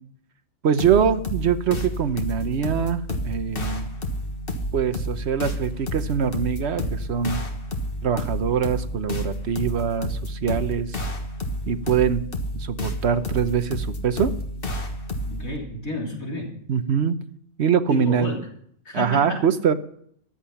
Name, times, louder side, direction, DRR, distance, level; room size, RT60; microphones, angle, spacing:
voice 1, 0.6-3.9 4.7-7.4 8.0-11.0 11.7-12.2 12.5-14.3 16.7-17.2 17.6-18.3 18.9-19.7, right 7 dB, 55° right, 11 dB, 1.0 m, -23 dB
sound 1, 0.8-15.6, equal, 40° left, 1.6 m, -30 dB
voice 2, 15.3-16.5 17.9-18.4 18.9-19.4, left 1 dB, 75° left, -1 dB, 4.0 m, -30 dB
14.5 x 11.0 x 5.8 m, 0.65 s
omnidirectional pair, 1.4 m